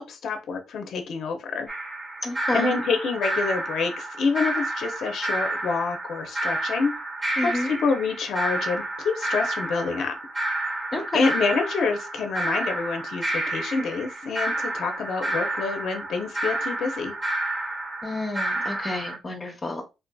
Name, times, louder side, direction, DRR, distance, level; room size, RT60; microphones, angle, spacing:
voice 1, 0.0-1.7 2.5-6.9 7.4-10.2 11.1-17.1, left 4 dB, 65° left, 5 dB, 0.6 m, -27 dB
sound 1, 1.7-19.2, right 2 dB, 25° right, 1.0 m, -30 dB
voice 2, 2.2-2.8 7.4-7.7 10.9-11.3 18.0-19.8, left 2 dB, 35° left, 2 dB, 0.8 m, -30 dB
3.6 x 2.6 x 2.2 m, 0.26 s
cardioid pair, 90°, 0 cm